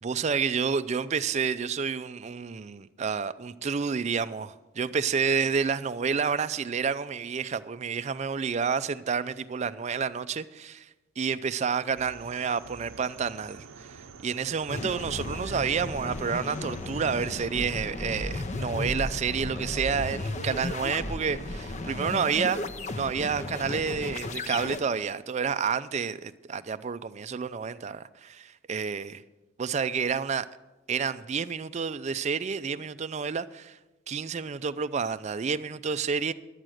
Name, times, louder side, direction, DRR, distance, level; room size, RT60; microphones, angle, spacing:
voice 1, 0.0-10.9 11.2-22.6 23.0-29.2 29.6-30.5 30.9-33.8 34.1-36.3, right 6 dB, 35° right, 0.4 m, -29 dB
sound 1, 12.0-17.5, right 5 dB, 90° right, 0.6 m, -48 dB
sound 2, 14.7-24.8, left 2 dB, 35° left, 0.7 m, -34 dB
11.5 x 9.0 x 6.3 m
head